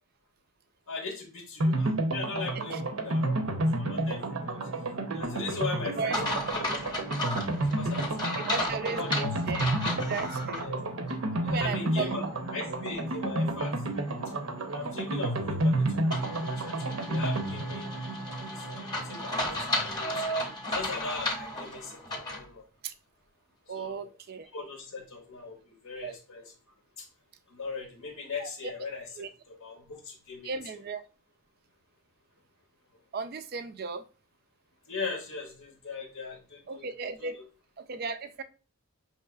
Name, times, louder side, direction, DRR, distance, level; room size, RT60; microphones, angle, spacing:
voice 1, 0.9-4.7 5.1-7.1 7.6-8.5 8.8-9.3 9.7-9.8 10.6-10.8 11.4-13.8 14.7-18.0 18.5-20.4 20.7-22.6 23.7-24.1 24.5-26.5 27.0-27.1 27.5-29.1 29.5-30.5 34.9-36.8 37.2-37.3, left 4 dB, 80° left, 3 dB, 0.7 m, -39 dB
sound 1, 1.6-20.2 20.5-20.6 20.8-20.9, right 1 dB, 75° right, 0.7 m, -31 dB
sound 2, 6.1-10.6 11.1-11.2 16.1-22.5, left 1 dB, 20° left, 0.8 m, -34 dB
voice 2, 8.4-9.6 10.0-10.6 11.4-12.3 22.8-22.9 23.7-24.5 26.0-26.1 28.4-28.7 29.2-29.3 30.4-31.0 33.1-34.1 36.7-37.4 37.8-38.4, right 5 dB, 45° right, 11 dB, 0.4 m, -35 dB
5.4 x 3.1 x 2.3 m, 0.34 s
head